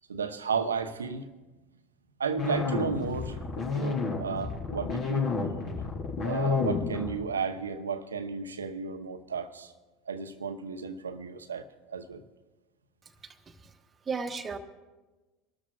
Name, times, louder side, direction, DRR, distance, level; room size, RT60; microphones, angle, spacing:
voice 1, 0.1-1.2 2.2-3.4 3.7-5.3 6.2-9.7 10.1-12.2, right 5 dB, 90° right, 8 dB, 0.8 m, -33 dB
sound 1, 2.4-7.3, left 4 dB, 50° left, 4.0 m, -30 dB
voice 2, 13.2-13.7 14.0-14.6, right 4 dB, 25° right, 6 dB, 1.2 m, -35 dB
27.0 x 12.5 x 2.4 m, 1.2 s
hypercardioid pair, 80°, 0 cm